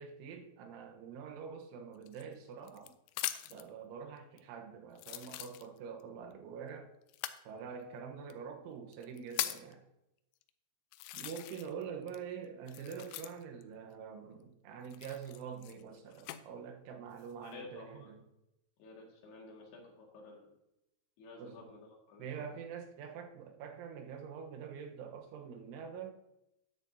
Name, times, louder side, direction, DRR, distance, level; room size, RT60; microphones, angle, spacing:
voice 1, 0.0-3.0 3.5-6.9 7.5-9.8 11.1-18.3 21.4-21.7 22.2-26.1, right 6 dB, 90° right, 4 dB, 3.6 m, -45 dB
sound 1, 2.0-3.7 4.4-4.5 5.0-6.0 7.1-7.4 8.3-8.4 8.9-9.7 10.4-10.5 10.9-11.8 12.1-13.6 14.8-16.4 17.1-17.5, left 15 dB, 90° left, 3.0 m, -41 dB
voice 2, 17.4-18.1 18.8-20.5 21.2-21.8 22.1-22.3, left 3 dB, 65° left, -1 dB, 3.8 m, -52 dB
13.0 x 9.6 x 2.7 m, 0.86 s
omnidirectional pair, 5.3 m